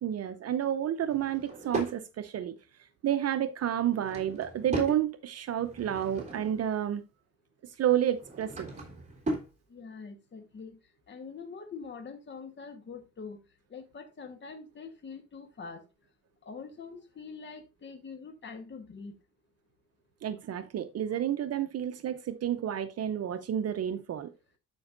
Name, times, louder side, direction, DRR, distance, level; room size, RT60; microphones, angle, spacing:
voice 1, 0.0-2.5 3.0-7.0 7.6-8.7 20.2-24.3, right 10 dB, 55° right, 0.7 m, -30 dB
Drawer open or close / Wood, 1.0-2.0 3.7-5.0 5.5-6.7 8.0-9.5, right 2 dB, 25° right, 3.3 m, -37 dB
voice 2, 9.7-10.8 11.1-13.4 13.7-15.8 16.4-19.1, left 5 dB, 40° left, 1.3 m, -44 dB
13.0 x 5.3 x 2.5 m
cardioid pair, 90°, 30 cm